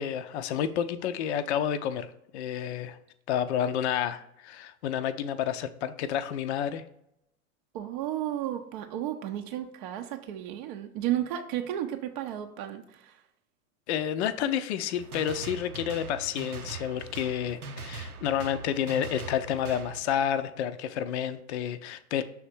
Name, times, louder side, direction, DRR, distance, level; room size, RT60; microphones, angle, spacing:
voice 1, 0.0-3.0 3.3-6.8 13.9-22.2, left 9 dB, 50° left, 10 dB, 0.5 m, -30 dB
voice 2, 7.7-13.2, right 12 dB, 40° right, 5 dB, 0.5 m, -33 dB
sound 1, 15.0-20.0, right 4 dB, 90° right, 0.7 m, -41 dB
6.4 x 3.5 x 4.3 m, 0.78 s
figure-of-eight pair, 95°, 43 cm